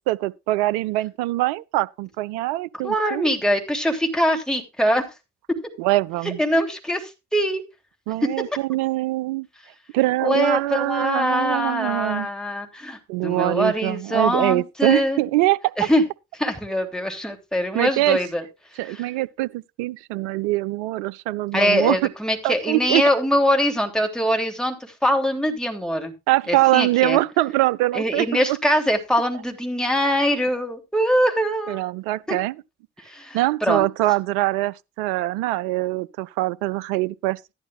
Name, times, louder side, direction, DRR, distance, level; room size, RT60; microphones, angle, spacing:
voice 1, 0.1-3.3 5.8-6.4 8.1-9.5 9.9-12.3 13.1-15.7 17.7-18.2 18.8-22.0 22.4-23.0 26.3-28.6 31.7-32.5 33.3-37.5, right 18 dB, 70° right, 0.5 m, -23 dB
voice 2, 2.8-5.0 6.4-7.6 10.2-15.2 15.8-16.0 16.4-18.4 18.9-19.0 21.5-26.1 26.5-27.2 27.9-31.8 32.3-32.4 33.0-33.9, equal, ahead, 2.9 m, -23 dB
14.0 x 10.5 x 2.4 m
figure-of-eight pair, 40°, 35 cm